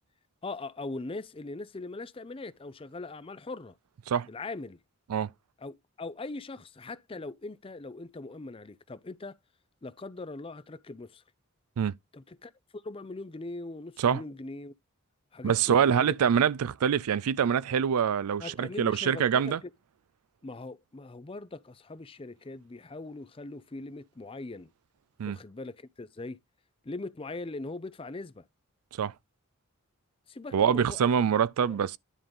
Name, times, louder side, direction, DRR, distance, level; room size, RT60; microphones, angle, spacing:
voice 1, 0.4-3.8 4.3-4.8 5.6-9.4 9.8-11.2 12.1-14.7 15.3-16.1 18.4-19.7 20.4-24.7 25.2-26.4 26.8-28.4 30.3-31.1 31.7-31.8, left 2 dB, 25° left, 0.5 m, -41 dB
voice 2, 15.4-19.6 25.2-25.4 29.0-29.1 30.5-32.0, right 7 dB, 85° right, 0.4 m, -25 dB
10.0 x 3.7 x 5.2 m
head